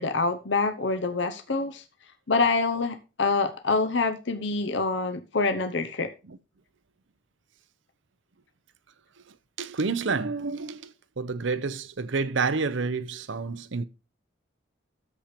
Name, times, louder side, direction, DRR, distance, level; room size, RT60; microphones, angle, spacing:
voice 1, 0.0-1.8 2.3-6.1, left 3 dB, 65° left, 0.9 m, -26 dB
voice 2, 9.3-13.9, right 4 dB, 70° right, 0.7 m, -29 dB
13.5 x 4.5 x 5.1 m
head